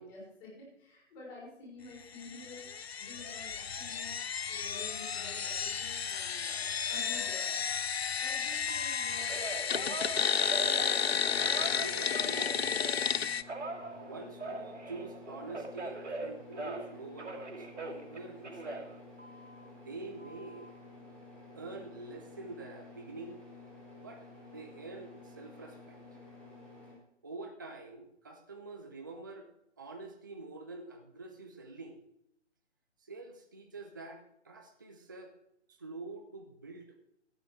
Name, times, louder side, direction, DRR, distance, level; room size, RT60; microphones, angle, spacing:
voice 1, 0.0-2.6 3.0-4.2 4.5-7.8 8.2-10.3 13.9-14.1, left 2 dB, 20° left, -4 dB, 4.6 m, -50 dB
sound 1, 2.2-13.4, left 7 dB, 60° left, 0.5 m, -32 dB
Telephone, 8.7-13.0 13.5-16.9 17.2-19.7 20.2-20.7, right 2 dB, 75° right, 2.4 m, -42 dB
voice 2, 10.6-11.2 11.6-18.9 19.8-20.7 21.5-23.5 24.0-26.0 27.2-29.5 29.8-32.0 33.0-35.3 35.7-37.0, right 3 dB, 15° right, 4 dB, 0.5 m, -46 dB
sound 2, 10.9-26.9, left 2 dB, 5° left, 1.6 m, -52 dB
13.0 x 8.8 x 4.7 m, 0.78 s
figure-of-eight pair, 140°, 36 cm